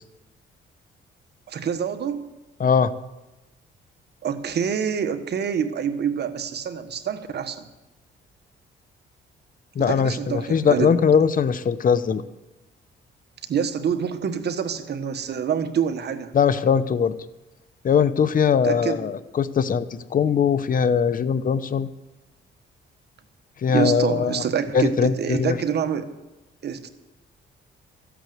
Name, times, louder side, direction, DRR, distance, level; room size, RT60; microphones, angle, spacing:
voice 1, 1.5-2.3 4.2-7.7 9.8-11.0 13.5-16.3 18.6-19.1 23.7-26.1 26.6-26.9, right 7 dB, 55° right, 9 dB, 1.3 m, -26 dB
voice 2, 2.6-2.9 9.7-12.2 16.3-17.1 17.8-21.9 23.6-24.4 24.7-25.6, left 7 dB, 45° left, 13 dB, 0.9 m, -21 dB
14.5 x 8.4 x 9.3 m, 1.0 s
cardioid pair, 90°, 20 cm